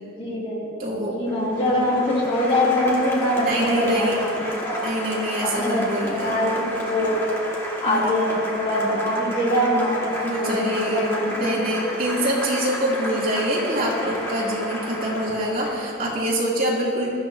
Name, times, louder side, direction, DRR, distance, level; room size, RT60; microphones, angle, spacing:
voice 1, 0.2-4.8 5.4-5.8 6.2-7.3 7.8-10.1 10.4-11.6, left 1 dB, 30° left, -6 dB, 3.3 m, -23 dB
voice 2, 0.8-1.2 3.4-4.2 4.8-6.4 7.8-8.1 10.2-17.1, right 1 dB, 45° right, -6 dB, 3.2 m, -25 dB
Applause, 1.3-16.1, left 1 dB, 15° left, 2.1 m, -32 dB
22.0 x 14.0 x 2.9 m, 2.6 s
head